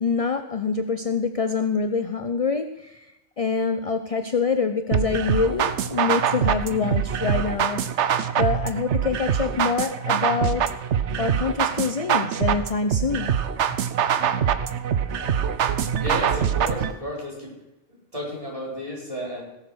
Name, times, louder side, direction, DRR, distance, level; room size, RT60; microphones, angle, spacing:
voice 1, 0.0-3.1 3.4-7.8 8.4-10.6 11.2-13.3, left 5 dB, 35° left, 8 dB, 0.7 m, -25 dB
sound 1, 4.9-16.9, right 8 dB, 70° right, 1.1 m, -24 dB
voice 2, 16.0-17.5 17.9-19.4, equal, 30° right, -4 dB, 4.8 m, -32 dB
18.0 x 7.4 x 6.3 m, 0.92 s
omnidirectional pair, 1.2 m